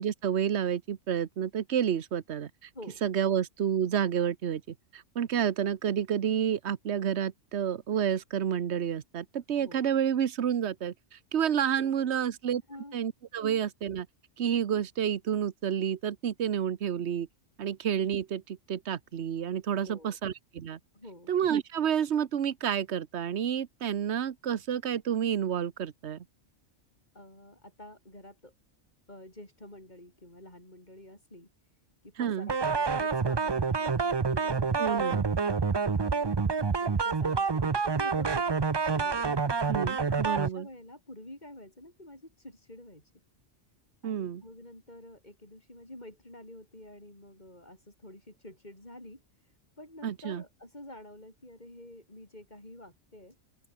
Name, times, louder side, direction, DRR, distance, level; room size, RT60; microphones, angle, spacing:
voice 1, 0.0-2.5 3.0-12.6 12.9-14.1 14.4-17.3 17.6-20.8 21.3-26.2 32.2-32.5 34.8-35.2 39.7-40.7 44.0-44.4 50.0-50.4, right 9 dB, 60° right, 1.2 m, -30 dB
voice 2, 2.7-3.3 9.5-9.9 11.8-12.2 12.7-13.1 13.3-13.5 19.8-20.2 20.9-21.4 27.1-28.5 29.1-31.5 32.0-36.3 36.8-38.6 38.9-39.4 40.1-43.1 44.0-53.4, left 1 dB, 35° left, 6.5 m, -49 dB
sound 1, 32.5-40.5, right 5 dB, 30° right, 0.4 m, -27 dB
open air
omnidirectional pair, 1.3 m